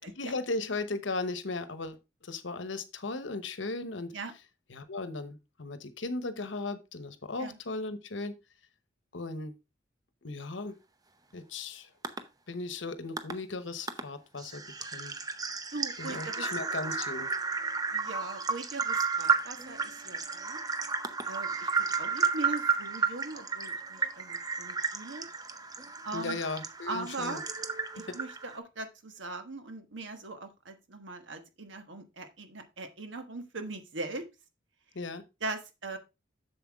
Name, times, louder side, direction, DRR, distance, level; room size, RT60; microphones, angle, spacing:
voice 1, 0.2-4.1 4.7-8.3 9.1-9.5 10.2-10.8 11.3-11.9 12.5-15.1 16.0-17.3 26.1-27.4 28.1-28.2 34.9-35.2, left 3 dB, 70° left, 11 dB, 1.0 m, -37 dB
sound 1, 12.0-12.2 13.2-13.3 13.9-14.0 14.4-28.6, right 5 dB, 20° right, 0.7 m, -33 dB
voice 2, 15.7-16.5 17.9-20.6 21.3-25.2 26.0-26.4 26.8-27.4 27.9-34.2 35.4-36.0, right 3 dB, 70° right, 7 dB, 1.4 m, -40 dB
7.7 x 6.9 x 3.5 m, 0.25 s
head